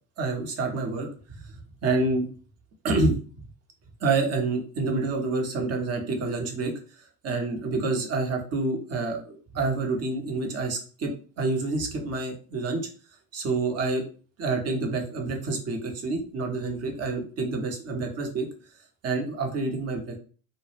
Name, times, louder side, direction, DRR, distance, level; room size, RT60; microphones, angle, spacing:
voice 1, 0.2-1.1 1.8-2.2 2.8-3.2 4.0-6.7 7.2-12.8 13.3-14.0 14.4-18.5 19.0-20.2, right 3 dB, 30° right, 3 dB, 0.7 m, -27 dB
2.1 x 2.0 x 3.1 m, 0.38 s
hypercardioid pair, 70°, 49 cm